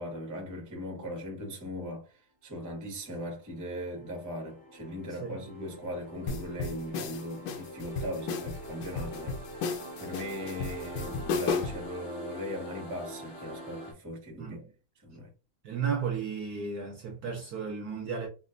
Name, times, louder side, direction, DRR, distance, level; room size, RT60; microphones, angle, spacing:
voice 1, 0.0-2.1 2.4-9.4 10.0-14.7 15.0-15.3, equal, 15° right, 0.5 m, -39 dB
sound 1, 3.3-13.9, equal, 30° left, 1.8 m, -44 dB
voice 2, 5.1-5.4 14.4-14.7 15.6-18.3, right 6 dB, 65° right, 1.0 m, -34 dB
sound 2, 6.3-11.9, left 5 dB, 75° left, 1.4 m, -34 dB
5.1 x 2.4 x 2.5 m
omnidirectional pair, 2.2 m